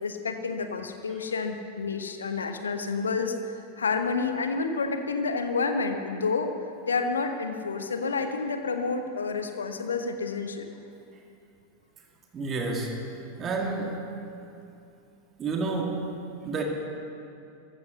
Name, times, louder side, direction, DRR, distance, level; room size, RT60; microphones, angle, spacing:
voice 1, 0.0-6.5 6.8-10.7, left 4 dB, 70° left, 7 dB, 1.1 m, -29 dB
voice 2, 12.3-13.0 13.4-14.0 15.4-15.9 16.5-16.6, right 3 dB, 25° right, 1 dB, 2.0 m, -29 dB
15.0 x 12.0 x 6.9 m, 2.6 s
figure-of-eight pair, 90°, 0 cm